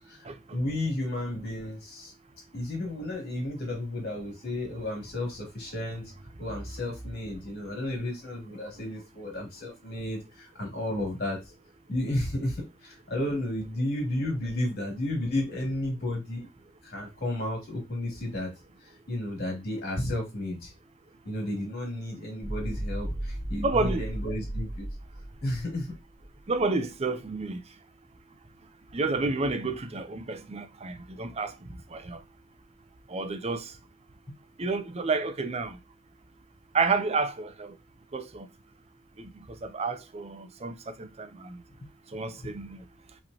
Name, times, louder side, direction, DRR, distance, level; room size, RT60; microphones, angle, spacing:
voice 1, 0.5-2.1 2.5-6.1 6.4-11.4 11.9-16.5 16.8-18.5 18.8-20.7 21.2-24.9 25.4-25.9 34.3-34.4 41.8-41.9 42.4-42.5, left 1 dB, 55° left, 2.6 m, -32 dB
sound 1, 22.4-26.6, right 1 dB, 35° left, 1.7 m, -35 dB
voice 2, 23.6-24.0 26.5-27.6 28.9-31.5 31.9-32.2 33.1-33.7 34.6-35.8 36.7-37.8 38.1-38.5 39.2-39.3 39.6-41.6 42.1-42.8, right 3 dB, 30° right, 0.6 m, -30 dB
5.1 x 3.3 x 2.8 m
head